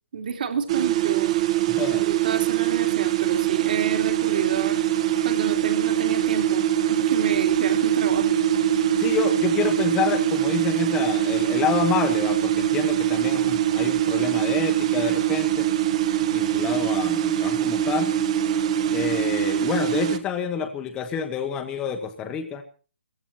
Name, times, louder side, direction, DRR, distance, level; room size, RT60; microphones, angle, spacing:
voice 1, 0.1-1.3 1.9-4.8 5.2-8.4, right 6 dB, 45° right, 5 dB, 3.1 m, -29 dB
sound 1, 0.7-20.2, right 11 dB, 30° right, 1.4 m, -23 dB
voice 2, 1.7-2.0 9.0-15.7 16.3-18.1 18.9-22.6, left 7 dB, 10° left, 5 dB, 1.2 m, -28 dB
18.5 x 15.5 x 4.3 m, 0.38 s
hypercardioid pair, 165°, 6 cm